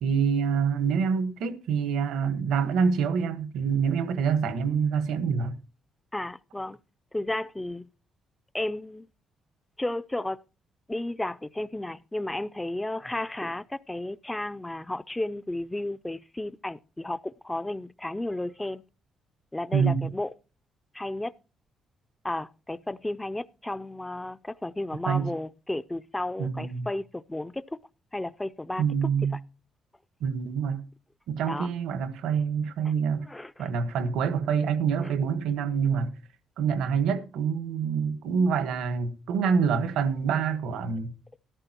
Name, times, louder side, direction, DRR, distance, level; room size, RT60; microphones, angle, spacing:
voice 1, 0.0-5.6 19.7-20.1 25.1-25.3 26.4-26.9 28.8-29.4 30.2-30.8 31.3-33.3 33.6-36.1 36.6-41.1, right 6 dB, 85° right, 1.3 m, -26 dB
voice 2, 6.1-6.8 7.1-7.9 8.5-9.1 9.8-10.4 10.9-18.8 19.5-20.3 20.9-21.3 22.2-27.8 28.1-28.8 31.5-31.7 32.8-32.9 33.3-33.7 35.0-35.1, left 1 dB, 10° left, 0.4 m, -33 dB
13.5 x 12.0 x 2.9 m
cardioid pair, 90°, 0 cm